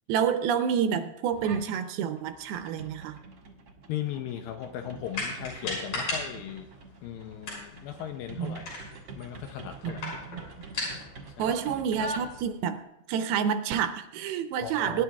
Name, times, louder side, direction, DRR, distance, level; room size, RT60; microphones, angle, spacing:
voice 1, 0.1-3.2 8.4-8.6 9.8-10.7 11.4-12.8 13.1-15.0, right 8 dB, 80° right, 9 dB, 2.5 m, -29 dB
sound 1, 1.3-1.8 2.2-12.8, right 2 dB, 55° right, 1.7 m, -44 dB
voice 2, 3.9-6.7 7.0-8.7 9.2-10.1 11.4-11.6 14.6-15.0, left 10 dB, 80° left, 6 dB, 2.1 m, -37 dB
sound 2, 5.1-12.5, left 2 dB, 60° left, 7.2 m, -39 dB
23.0 x 10.5 x 2.3 m, 0.88 s
omnidirectional pair, 4.6 m